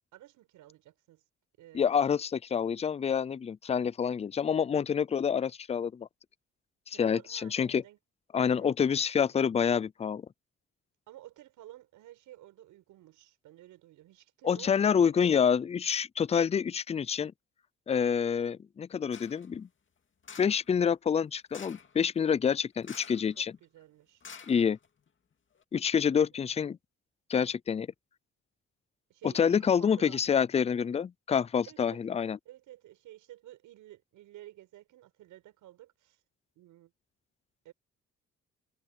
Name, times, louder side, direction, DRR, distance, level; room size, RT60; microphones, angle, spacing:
voice 1, 0.1-1.2 1.6-2.1 6.9-8.0 8.4-8.7 11.1-15.2 23.3-24.2 29.1-30.4 31.6-32.0 32.5-36.2 36.6-36.9 37.6-37.7, right 14 dB, 90° right, 7.3 m, -53 dB
voice 2, 1.7-6.1 6.9-7.8 8.3-10.2 14.4-17.3 17.9-19.7 20.4-23.5 24.5-24.8 25.7-26.8 27.3-27.9 29.2-32.4, left 7 dB, 20° left, 0.4 m, -27 dB
sound 1, 19.1-19.5 20.2-20.7 21.5-21.9 22.8-23.3 23.6-23.7 24.2-25.1 25.5-25.6, left 6 dB, 40° left, 2.3 m, -48 dB
cardioid pair, 90°, 30 cm